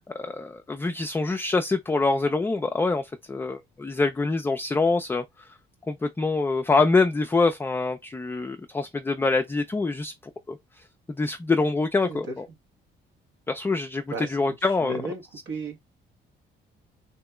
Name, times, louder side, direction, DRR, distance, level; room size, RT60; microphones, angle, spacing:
voice 1, 0.1-5.2 5.9-10.1 10.5-10.6 11.2-12.5 13.5-15.0, left 3 dB, 10° left, 0.3 m, -25 dB
voice 2, 12.0-12.4 14.1-14.4 14.8-15.8, right 2 dB, 75° right, 1.0 m, -34 dB
2.9 x 2.8 x 2.2 m
cardioid pair, 90°, 20 cm